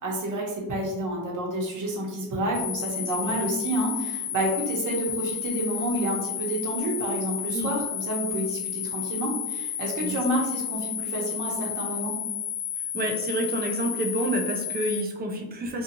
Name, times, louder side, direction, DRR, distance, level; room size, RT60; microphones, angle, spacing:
voice 1, 0.0-12.2, right 1 dB, 40° right, -2 dB, 1.0 m, -29 dB
sound 1, 2.5-15.0, left 9 dB, 90° left, 0.6 m, -32 dB
voice 2, 12.9-15.8, right 1 dB, 20° right, 2 dB, 0.5 m, -29 dB
2.6 x 2.4 x 2.7 m, 0.96 s
cardioid pair, 95°, 47 cm